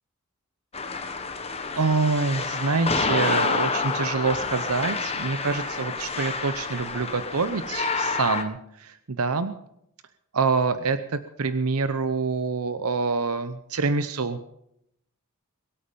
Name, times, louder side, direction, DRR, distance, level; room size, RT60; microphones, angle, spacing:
sound 1, 0.7-8.4, left 4 dB, 30° left, 1.3 m, -28 dB
voice 1, 1.8-9.5 10.3-14.4, right 4 dB, 90° right, 11 dB, 0.8 m, -26 dB
22.5 x 8.6 x 5.4 m, 0.76 s
head